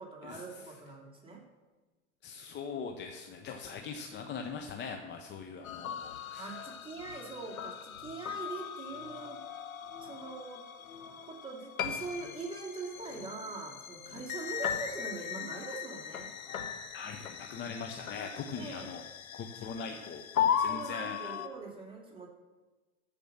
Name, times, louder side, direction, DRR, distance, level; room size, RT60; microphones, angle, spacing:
voice 1, 0.0-1.4 6.4-9.5 10.0-11.0 11.3-16.4 18.6-18.9 20.7-22.3, right 3 dB, 10° right, -1 dB, 2.2 m, -43 dB
voice 2, 2.2-6.6 16.9-19.0 19.3-21.3, left 5 dB, 25° left, 4 dB, 0.9 m, -41 dB
sound 1, 5.6-21.5, left 8 dB, 80° left, 1.0 m, -38 dB
13.5 x 5.1 x 6.5 m, 1.2 s
hypercardioid pair, 100°, 40 cm